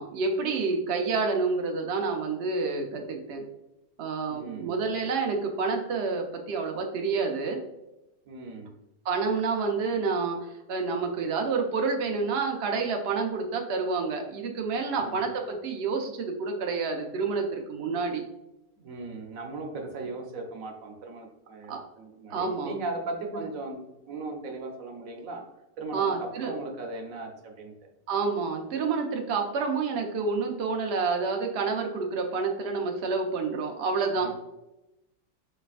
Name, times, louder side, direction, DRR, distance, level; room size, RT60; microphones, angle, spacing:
voice 1, 0.0-3.4 4.0-7.6 9.0-18.2 21.7-21.8 22.3-22.7 23.3-23.4 25.9-26.5 28.1-34.3, right 4 dB, 90° right, 2 dB, 0.5 m, -28 dB
voice 2, 4.3-4.9 8.3-8.7 14.9-15.2 18.8-23.8 24.1-25.4 25.8-27.7 34.2-34.3, right 3 dB, 60° right, 3 dB, 1.0 m, -38 dB
5.6 x 3.2 x 2.4 m, 0.93 s
omnidirectional pair, 2.0 m